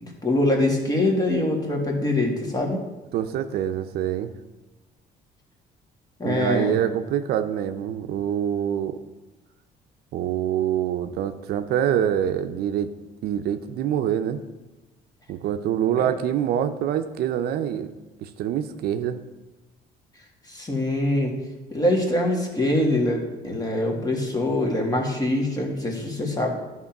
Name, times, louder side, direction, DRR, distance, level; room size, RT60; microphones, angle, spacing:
voice 1, 0.0-2.8 6.2-6.7 16.0-16.1 20.5-21.3 21.7-26.5, left 1 dB, 20° left, 1 dB, 1.8 m, -24 dB
voice 2, 3.1-4.3 6.2-9.0 10.1-12.9 13.2-14.4 15.3-17.9 18.2-19.2, right 10 dB, 70° right, 9 dB, 0.6 m, -25 dB
11.0 x 3.7 x 5.9 m, 1.1 s
cardioid pair, 110°, 17 cm